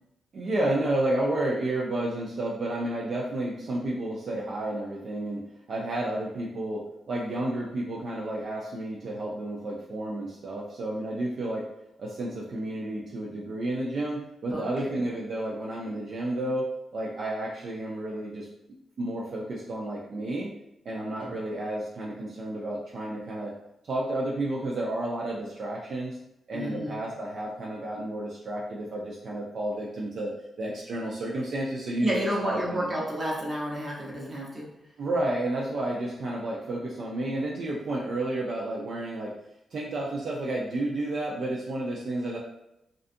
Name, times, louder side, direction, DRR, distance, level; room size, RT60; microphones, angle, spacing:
voice 1, 0.3-11.7 12.0-20.5 20.9-23.5 23.9-26.2 26.5-30.3 30.6-32.9 35.0-39.3 39.7-42.4, right 1 dB, 60° right, -3 dB, 0.4 m, -31 dB
voice 2, 14.5-15.0 21.2-21.3 26.5-27.0 32.0-34.7, equal, 30° right, -4 dB, 0.8 m, -31 dB
2.5 x 2.3 x 2.5 m, 0.86 s
cardioid pair, 90°, 0 cm